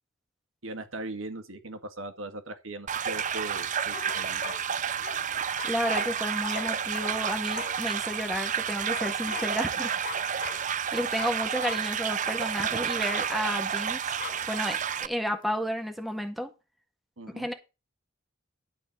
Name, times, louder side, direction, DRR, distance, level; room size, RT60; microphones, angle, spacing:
voice 1, 0.6-4.5 17.2-17.5, right 2 dB, 85° right, 2.1 m, -39 dB
sound 1, 2.9-15.1, right 8 dB, 40° right, 0.6 m, -30 dB
sound 2, 3.9-8.1 8.9-9.7 10.0-10.8 11.2-11.9 12.3-12.4 13.0-13.3 14.2-14.5, left 6 dB, 40° left, 0.7 m, -41 dB
voice 2, 5.6-10.0 10.9-14.1 14.5-16.5 17.4-17.5, equal, ahead, 1.7 m, -32 dB
12.5 x 4.4 x 7.8 m
head